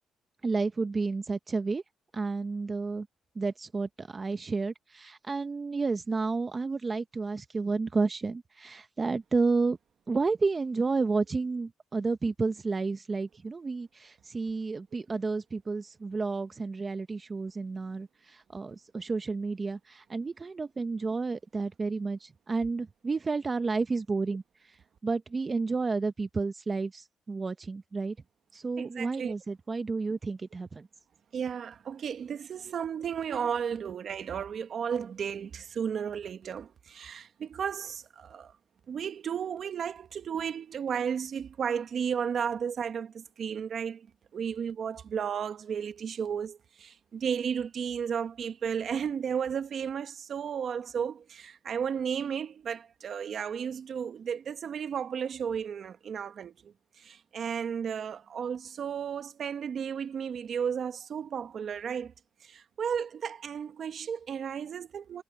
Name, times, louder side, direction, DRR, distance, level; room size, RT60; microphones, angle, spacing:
voice 1, 0.4-1.8 2.1-3.1 3.4-9.8 10.1-24.8 25.0-28.2 28.5-30.9, right 4 dB, 30° right, 0.8 m, -31 dB
voice 2, 28.8-29.3 31.3-38.5 38.9-44.1 44.3-62.1 62.4-65.2, right 7 dB, 55° right, 1.4 m, -34 dB
cardioid pair, 90°, 0 cm